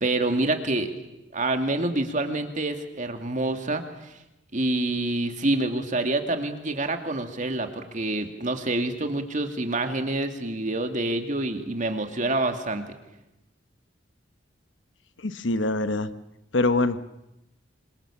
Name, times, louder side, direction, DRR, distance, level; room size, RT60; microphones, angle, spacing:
voice 1, 0.0-0.9 1.3-3.8 4.5-12.8, right 2 dB, 40° right, 6 dB, 2.5 m, -27 dB
voice 2, 15.2-16.1 16.5-17.2, left 2 dB, 80° left, 12 dB, 1.2 m, -24 dB
27.0 x 26.0 x 7.4 m, 0.91 s
head